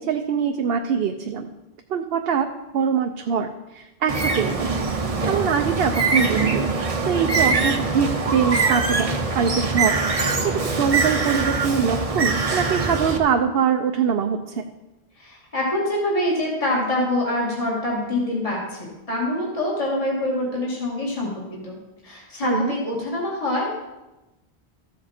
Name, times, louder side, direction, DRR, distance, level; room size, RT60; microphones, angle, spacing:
voice 1, 0.0-1.5 1.9-2.5 2.7-4.7 5.3-6.7 7.0-14.6 22.4-22.7, right 7 dB, 70° right, 5 dB, 0.8 m, -23 dB
Bird, 4.1-13.2, right 4 dB, 35° right, 0.9 m, -23 dB
voice 2, 15.2-21.8 22.0-23.8, left 1 dB, 35° left, -4 dB, 2.3 m, -25 dB
14.0 x 7.4 x 4.3 m, 1.0 s
omnidirectional pair, 1.1 m